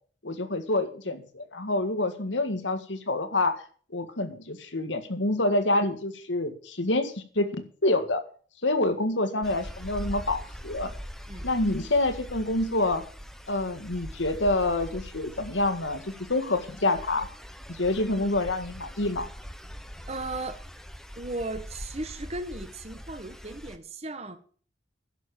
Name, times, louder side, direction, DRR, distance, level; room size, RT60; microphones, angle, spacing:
voice 1, 0.2-3.5 3.9-7.5 7.8-8.2 8.6-10.9 11.4-13.0 13.5-17.3 17.7-19.3, left 2 dB, 80° left, 9 dB, 1.9 m, -27 dB
sound 1, 9.4-23.8, equal, ahead, 1.1 m, -42 dB
voice 2, 20.1-20.6 21.2-24.4, right 2 dB, 35° right, 10 dB, 1.5 m, -36 dB
11.0 x 7.5 x 8.4 m, 0.43 s
head